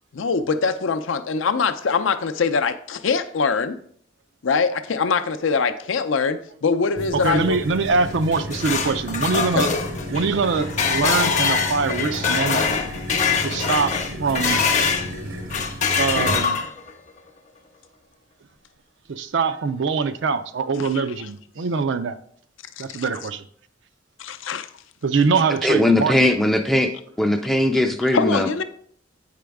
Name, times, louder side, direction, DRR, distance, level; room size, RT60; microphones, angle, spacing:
voice 1, 0.1-3.8 4.4-7.6 9.5-9.7 20.8-21.3 22.8-23.1 24.2-24.7 28.1-28.6, left 5 dB, 70° left, 10 dB, 0.5 m, -23 dB
sound 1, 7.0-16.4, equal, 85° right, 1.4 m, -33 dB
voice 2, 7.2-9.7 10.1-12.8 13.4-13.9 14.2-14.6 16.0-16.6 19.1-22.1 22.8-23.4 25.0-26.3, right 4 dB, 65° right, 11 dB, 0.4 m, -23 dB
sound 2, 8.1-15.1 15.5-16.9, left 5 dB, 35° left, 0.7 m, -23 dB
voice 3, 25.5-26.9 27.2-28.5, left 1 dB, ahead, 4 dB, 0.4 m, -19 dB
8.4 x 5.0 x 3.5 m, 0.62 s
head